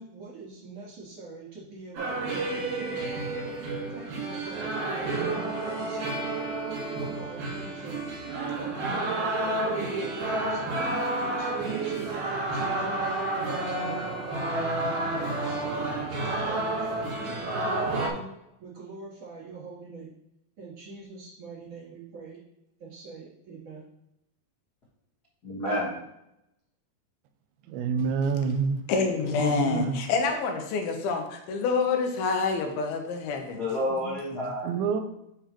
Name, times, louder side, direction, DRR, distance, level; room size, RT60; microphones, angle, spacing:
voice 1, 0.0-3.1 3.9-6.0 7.0-8.0 8.5-12.1 12.5-13.1 13.8-14.1 14.8-16.0 16.4-17.3 17.6-18.3 18.6-20.2 20.6-22.4 22.8-23.8, right 4 dB, 45° right, -8 dB, 3.8 m, -44 dB
sound 1, 2.0-18.1, right 2 dB, 65° right, 2.8 m, -30 dB
voice 2, 25.4-26.0 33.6-35.0, left 1 dB, 55° left, -7 dB, 1.0 m, -30 dB
voice 3, 27.7-28.8 29.4-30.0 34.7-35.0, right 6 dB, 85° right, 8 dB, 2.4 m, -27 dB
voice 4, 28.9-33.6, left 4 dB, 80° left, 4 dB, 2.8 m, -27 dB
7.2 x 6.6 x 3.0 m, 0.84 s
omnidirectional pair, 4.3 m